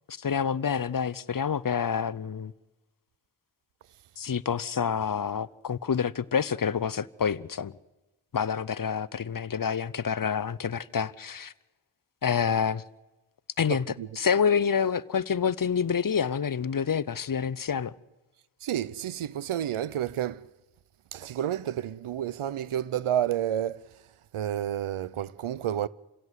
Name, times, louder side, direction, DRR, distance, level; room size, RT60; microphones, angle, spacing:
voice 1, 0.1-2.5 4.2-7.7 8.3-11.5 12.2-12.8 13.6-13.8 14.2-17.9, left 7 dB, 40° left, 0.8 m, -27 dB
voice 2, 13.7-14.1 18.6-20.4 21.1-23.9 24.3-25.9, right 11 dB, 80° right, 0.7 m, -30 dB
27.0 x 16.5 x 8.1 m
cardioid pair, 60°, 49 cm